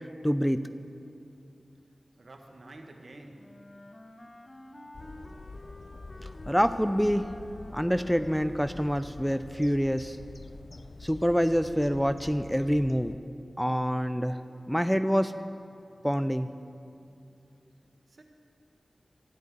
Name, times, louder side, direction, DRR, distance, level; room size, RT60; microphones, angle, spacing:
voice 1, 0.2-0.6 6.5-7.3 7.7-10.2 11.0-13.2 13.6-14.4 14.7-15.3 16.0-16.5, equal, ahead, 11 dB, 0.4 m, -26 dB
voice 2, 2.2-3.7 18.1-18.2, right 2 dB, 65° right, 3 dB, 1.5 m, -49 dB
Wind instrument woodwind instrument, 3.4-8.8, left 1 dB, 35° left, 1.0 m, -49 dB
sound 1, 4.9-13.2, left 3 dB, 60° left, 0.5 m, -46 dB
13.0 x 7.3 x 9.6 m, 2.6 s
wide cardioid pair, 60°, 0 cm